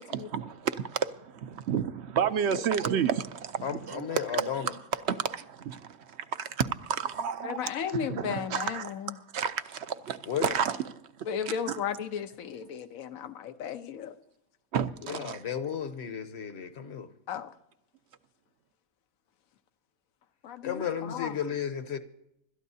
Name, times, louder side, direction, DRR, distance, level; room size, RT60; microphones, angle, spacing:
voice 1, 0.1-7.6 7.9-11.8 14.7-15.4, right 7 dB, 60° right, 0.8 m, -31 dB
voice 2, 3.6-4.7 10.3-10.5 15.1-17.1 20.6-22.0, left 8 dB, 55° left, 1.1 m, -33 dB
voice 3, 7.4-9.1 11.3-14.1 17.3-17.5 20.4-21.3, left 8 dB, 80° left, 1.2 m, -35 dB
26.0 x 12.5 x 2.8 m
omnidirectional pair, 1.4 m